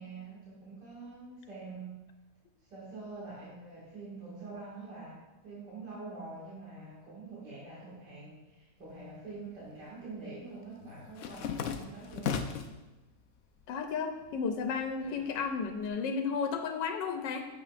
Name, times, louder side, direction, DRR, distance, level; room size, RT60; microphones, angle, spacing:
voice 1, 0.0-2.0 2.6-12.4, right 3 dB, 75° right, -8 dB, 2.6 m, -45 dB
sound 1, 8.9-9.7 10.0-12.8 13.3-13.9 14.2-15.9, left 7 dB, 70° left, 0.7 m, -38 dB
voice 2, 13.7-17.5, left 5 dB, 90° left, 5 dB, 1.3 m, -33 dB
8.7 x 7.4 x 2.5 m, 1.1 s
omnidirectional pair, 1.8 m